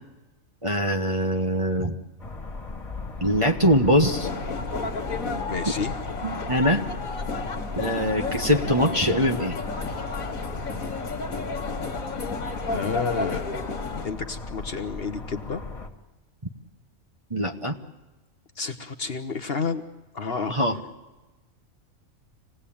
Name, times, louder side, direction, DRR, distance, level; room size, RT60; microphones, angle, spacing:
voice 1, 0.6-1.9 3.2-4.3 6.2-6.8 7.8-9.6 17.3-17.8 20.5-20.8, equal, 25° right, 4 dB, 1.2 m, -22 dB
sound 1, 2.2-15.9, left 3 dB, 25° left, 2.1 m, -38 dB
sound 2, 4.0-14.0, left 3 dB, 80° left, 2.2 m, -32 dB
voice 2, 5.5-5.9 12.7-13.5 14.0-15.6 18.6-19.8 20.1-20.5, left 5 dB, 50° left, 8 dB, 1.2 m, -30 dB
26.0 x 18.5 x 8.7 m, 1.1 s
omnidirectional pair, 1.4 m